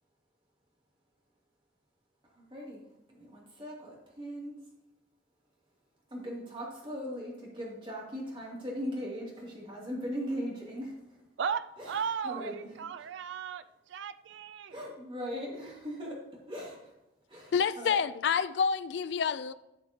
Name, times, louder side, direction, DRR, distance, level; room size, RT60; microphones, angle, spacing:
voice 1, 2.3-2.8 3.1-4.6 6.1-11.0 11.8-11.9 12.2-13.1 14.7-16.9 17.3-18.0, equal, 25° right, 2.6 m, -39 dB
voice 2, 11.4-14.8, right 6 dB, 75° right, 0.4 m, -36 dB
voice 3, 17.5-19.5, left 6 dB, 65° left, 0.3 m, -28 dB
11.5 x 6.6 x 2.9 m
head